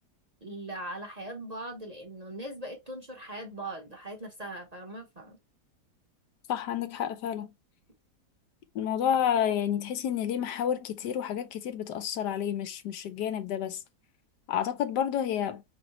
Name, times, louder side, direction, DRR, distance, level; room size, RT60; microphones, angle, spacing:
voice 1, 0.4-5.4, right 1 dB, 30° right, 1.0 m, -40 dB
voice 2, 6.5-7.5 8.7-13.8 14.5-15.6, left 9 dB, 85° left, 1.3 m, -30 dB
5.1 x 3.2 x 2.9 m
omnidirectional pair, 1.8 m